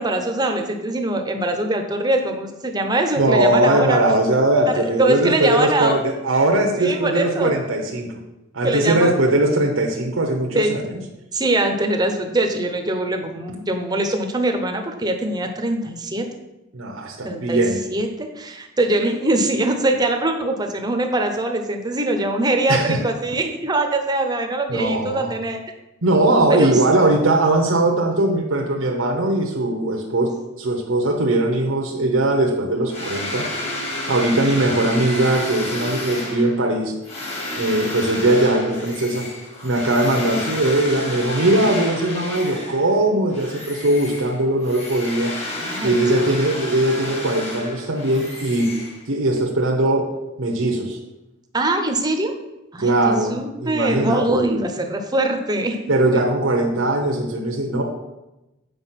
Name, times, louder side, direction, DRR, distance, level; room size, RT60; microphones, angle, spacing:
voice 1, 0.0-4.0 4.7-6.0 6.8-7.5 8.6-9.2 10.5-10.7 11.3-16.3 17.2-17.6 17.9-25.6 26.5-26.8 45.6-46.3 51.5-52.3 52.7-55.8 56.1-56.2, right 2 dB, 20° right, 5 dB, 0.8 m, -22 dB
voice 2, 3.2-8.1 8.5-10.8 16.7-17.8 22.7-23.0 24.7-25.4 26.0-33.5 34.1-36.9 37.6-39.3 39.6-45.3 45.8-48.7 49.1-50.1 50.4-51.0 52.8-54.4 55.9-57.8, right 1 dB, 75° right, 0 dB, 0.9 m, -20 dB
sound 1, 32.9-43.0 43.3-49.3, left 1 dB, 30° left, 1.8 m, -31 dB
8.0 x 4.9 x 5.8 m, 0.99 s
head